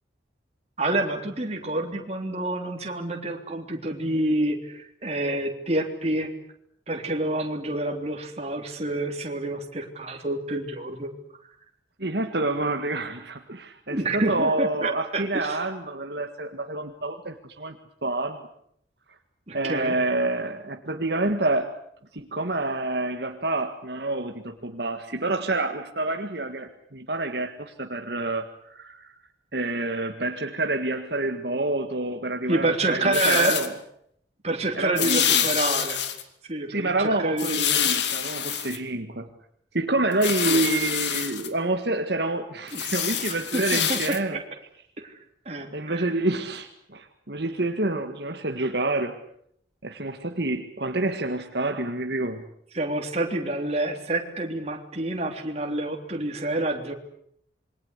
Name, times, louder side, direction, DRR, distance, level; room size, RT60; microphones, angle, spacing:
voice 1, 0.8-6.3 6.9-11.1 13.9-15.6 19.5-20.1 32.5-33.6 34.4-36.0 36.5-37.9 40.4-40.6 42.7-44.4 45.0-45.1 45.5-46.1 52.7-56.9, right 2 dB, 35° right, 2 dB, 3.5 m, -28 dB
voice 2, 12.0-18.4 19.5-21.7 22.1-29.1 29.5-33.7 34.7-35.5 36.7-39.3 39.7-44.4 45.7-49.2 49.8-52.5, right 2 dB, 60° right, 5 dB, 1.8 m, -28 dB
sound 1, 33.1-33.7 35.0-36.2 37.4-38.8 40.1-41.5 42.7-44.2, left 9 dB, 70° left, 2.5 m, -26 dB
27.5 x 23.0 x 8.2 m, 0.69 s
head